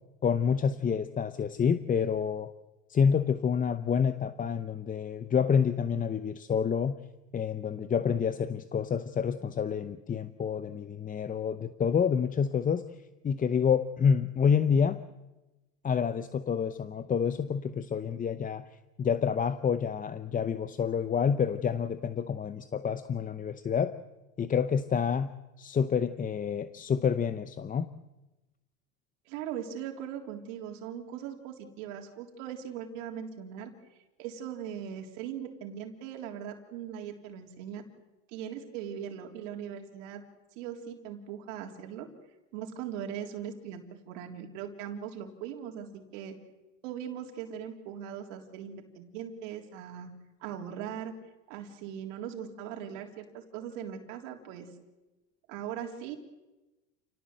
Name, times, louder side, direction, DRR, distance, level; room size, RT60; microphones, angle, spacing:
voice 1, 0.2-2.5 2.9-7.0 7.3-12.9 13.2-15.0 15.8-18.6 19.0-24.0 24.4-25.3 25.6-27.9, left 7 dB, 20° left, 12 dB, 0.8 m, -28 dB
voice 2, 29.3-33.7 34.2-37.8 38.3-40.2 40.6-42.1 42.5-46.4 46.8-50.1 50.4-51.1 51.5-54.7 55.5-56.2, right 9 dB, 70° right, 2 dB, 3.6 m, -40 dB
28.5 x 18.5 x 7.9 m, 1.1 s
supercardioid pair, 115°, 39 cm